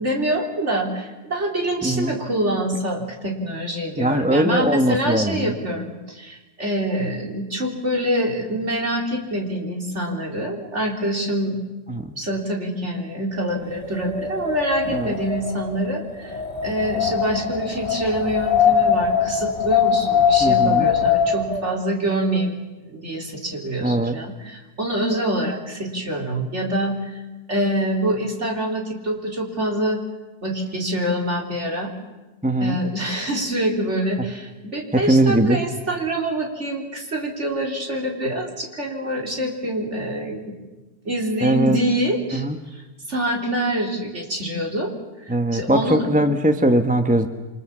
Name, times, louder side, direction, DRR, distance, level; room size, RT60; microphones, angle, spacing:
voice 1, 0.0-11.6 12.1-16.4 16.6-22.6 22.9-27.1 27.5-30.0 30.4-31.9 32.6-40.6 41.1-42.4 42.7-44.9 45.3-46.1, right 1 dB, 45° right, 1 dB, 4.2 m, -25 dB
voice 2, 4.0-5.5 11.9-12.1 14.9-15.1 20.4-20.9 23.8-24.2 32.4-32.8 34.9-35.6 41.4-41.8 42.3-42.6 45.3-47.3, right 1 dB, 5° right, 7 dB, 1.0 m, -20 dB
Wind, 13.7-21.6, left 7 dB, 40° left, 3.6 m, -21 dB
28.0 x 25.0 x 7.4 m, 1.1 s
omnidirectional pair, 1.6 m